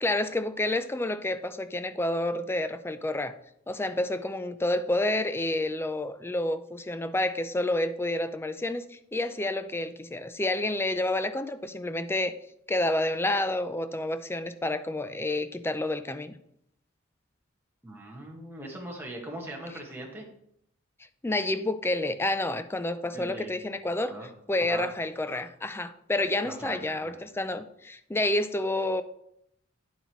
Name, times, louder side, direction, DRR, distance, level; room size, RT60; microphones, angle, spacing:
voice 1, 0.0-3.3 3.7-12.3 12.7-16.4 21.2-24.1 24.5-29.0, left 1 dB, 10° left, 11 dB, 0.4 m, -29 dB
voice 2, 17.8-20.3 23.1-23.5 23.8-24.3 24.6-24.9 26.4-27.2, right 1 dB, 10° right, -2 dB, 1.6 m, -41 dB
9.5 x 7.8 x 3.1 m, 0.73 s
head